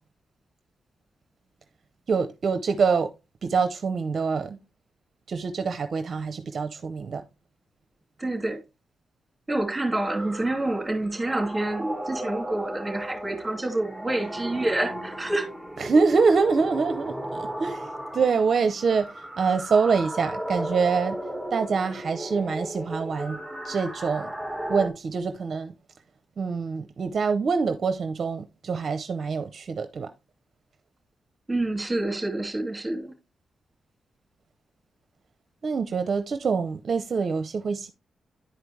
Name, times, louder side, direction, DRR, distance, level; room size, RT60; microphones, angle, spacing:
voice 1, 2.1-3.1 3.4-4.6 5.3-7.2 15.8-21.2 21.5-23.4 23.6-24.3 24.7-25.7 26.4-30.1 35.6-37.9, right 5 dB, 55° right, 0.6 m, -25 dB
voice 2, 8.2-8.6 9.5-15.5 31.5-33.1, right 2 dB, 15° right, 2.7 m, -28 dB
sound 1, 10.0-24.9, right 1 dB, 5° left, 1.5 m, -35 dB
10.5 x 4.9 x 3.1 m
cardioid pair, 100°, 0 cm